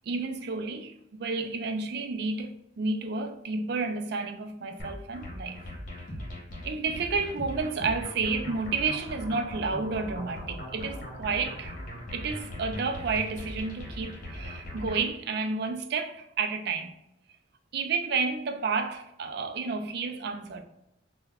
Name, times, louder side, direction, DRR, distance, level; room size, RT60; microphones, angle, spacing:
voice 1, 0.1-0.9 1.2-5.7 6.6-11.8 12.1-16.9 17.7-20.6, right 4 dB, 60° right, 0.4 m, -31 dB
sound 1, 4.8-15.1, left 1 dB, 45° left, 0.9 m, -40 dB
5.3 x 2.2 x 2.3 m
head